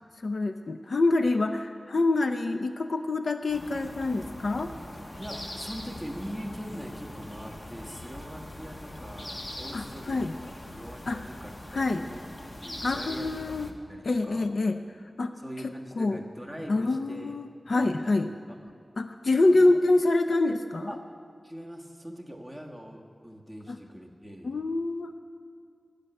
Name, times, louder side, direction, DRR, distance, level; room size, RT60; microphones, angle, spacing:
voice 1, 0.2-4.7 9.7-10.3 11.1-11.2 11.7-12.1 12.8-13.7 14.0-14.8 15.2-15.3 15.6-16.2 16.7-18.3 19.0-20.9 23.7-23.8 24.4-25.1, left 2 dB, 65° left, 8 dB, 0.6 m, -26 dB
sound 1, 3.5-13.7, left 1 dB, 35° left, 1.1 m, -42 dB
voice 2, 5.2-10.2 10.5-12.2 12.6-14.5 15.4-17.3 17.7-18.2 19.5-19.7 20.9-21.0 21.4-24.5, equal, 5° left, 0 dB, 1.5 m, -42 dB
15.0 x 6.7 x 9.7 m, 2.2 s
wide cardioid pair, 85°, 0 cm